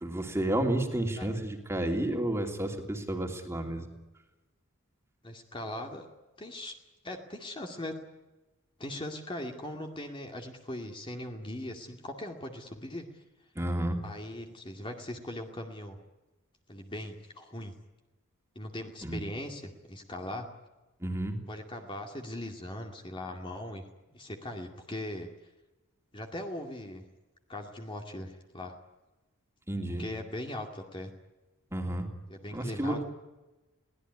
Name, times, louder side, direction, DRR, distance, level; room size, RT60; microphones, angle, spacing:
voice 1, 0.0-3.9 13.6-14.0 19.0-19.2 21.0-21.4 29.7-30.0 31.7-32.1 32.5-33.0, right 1 dB, 10° right, 3 dB, 3.0 m, -31 dB
voice 2, 5.2-6.1 6.4-6.7 7.0-7.9 8.8-13.0 14.0-16.0 16.7-17.7 18.6-20.5 21.5-23.8 24.1-25.3 26.1-27.0 27.5-28.7 30.0-31.1 32.3-33.0, left 1 dB, 25° left, 3 dB, 2.3 m, -39 dB
23.0 x 18.0 x 9.9 m, 1.1 s
head